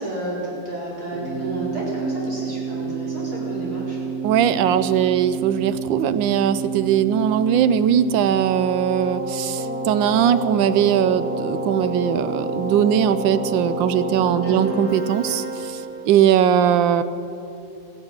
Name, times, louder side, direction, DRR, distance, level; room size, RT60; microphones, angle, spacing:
voice 1, 0.0-4.0 14.4-14.7, right 1 dB, 50° right, -6 dB, 4.9 m, -30 dB
Keyboard (musical), 1.1-16.2, right 3 dB, 25° right, 3.0 m, -29 dB
voice 2, 4.2-17.0, right 9 dB, 75° right, 13 dB, 1.3 m, -20 dB
15.0 x 10.5 x 8.8 m, 2.9 s
omnidirectional pair, 2.1 m